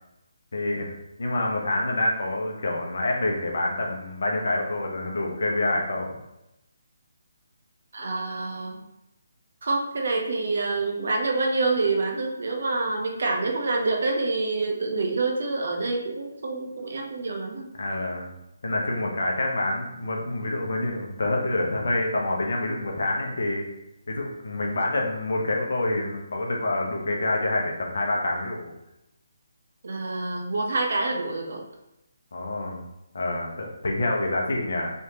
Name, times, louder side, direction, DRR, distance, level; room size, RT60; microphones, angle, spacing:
voice 1, 0.5-0.9 1.2-6.1 17.8-18.3 18.6-23.7 24.1-28.7 32.3-32.8 33.1-34.9, left 2 dB, 60° left, 0 dB, 0.7 m, -27 dB
voice 2, 7.9-8.8 9.6-17.7 29.8-31.6, right 3 dB, 55° right, 1 dB, 0.7 m, -27 dB
3.3 x 3.1 x 2.8 m, 0.90 s
figure-of-eight pair, 145°, 0 cm